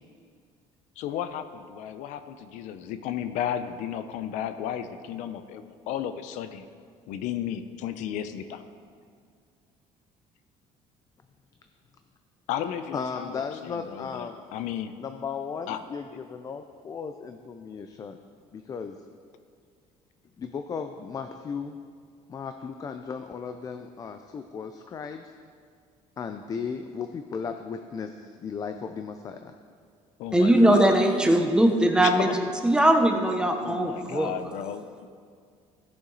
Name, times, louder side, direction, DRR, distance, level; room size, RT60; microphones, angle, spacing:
voice 1, 1.0-6.7 7.1-8.6 12.5-14.9 15.7-15.8 30.2-31.0 32.0-32.4 33.6-35.1, left 9 dB, 80° left, 10 dB, 0.6 m, -34 dB
voice 2, 12.9-14.4 15.0-18.2 18.5-19.0 20.4-21.8 22.3-25.3 26.2-29.5, left 6 dB, 30° left, 7 dB, 0.4 m, -36 dB
voice 3, 30.3-32.3 32.6-34.3, right 1 dB, 5° right, 4 dB, 0.8 m, -20 dB
15.0 x 7.0 x 4.0 m, 2.1 s
cardioid pair, 145°, 12 cm